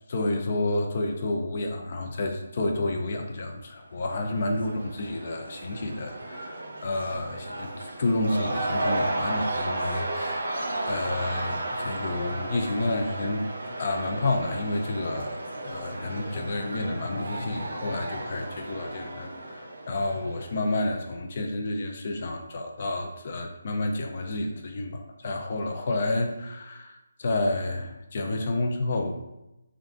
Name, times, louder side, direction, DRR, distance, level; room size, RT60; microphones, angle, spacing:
voice 1, 0.1-10.5 10.9-15.4 15.6-29.1, left 2 dB, 35° left, 3 dB, 0.4 m, -30 dB
Cheering / Crowd, 4.0-20.9, right 2 dB, 65° right, 0.8 m, -34 dB
3.4 x 2.5 x 3.8 m, 0.94 s
hypercardioid pair, 175°, 0 cm